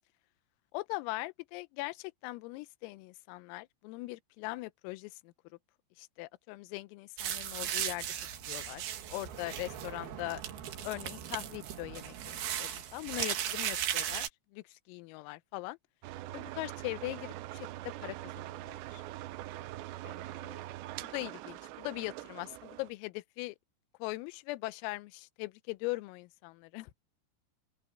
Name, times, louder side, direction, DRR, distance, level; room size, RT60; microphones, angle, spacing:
voice 1, 0.7-5.3 6.0-8.1 8.5-8.8 9.1-10.4 10.8-14.2 14.5-15.8 16.3-17.7 18.0-19.0 20.0-20.6 21.0-23.6 24.0-26.9, left 21 dB, 85° left, 3.5 m, -40 dB
sound 1, 7.2-14.3, right 10 dB, 60° right, 3.1 m, -37 dB
sound 2, 16.0-22.9, right 15 dB, 90° right, 2.5 m, -43 dB
open air
omnidirectional pair, 6.0 m